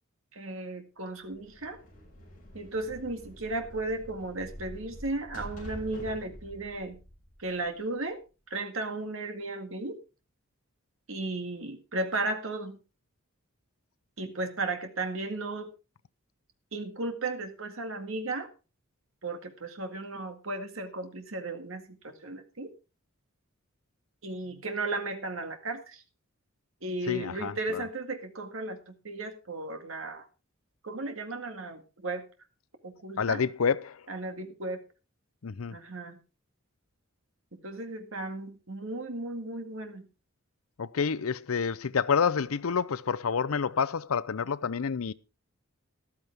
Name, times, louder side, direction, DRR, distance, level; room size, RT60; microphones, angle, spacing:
voice 1, 0.3-1.8 2.5-7.0 7.4-8.2 8.5-10.0 11.1-12.8 14.2-15.7 16.7-18.5 19.2-22.7 24.2-26.0 26.8-30.3 30.8-32.3 32.8-33.4 34.1-34.8 35.7-36.2 37.6-40.1, right 2 dB, 70° right, 2.0 m, -35 dB
sound 1, 1.2-8.0, equal, 40° left, 6.8 m, -47 dB
voice 2, 27.1-27.8 33.2-34.0 35.4-35.8 40.8-45.1, left 6 dB, 90° left, 0.6 m, -28 dB
13.5 x 12.5 x 3.4 m
head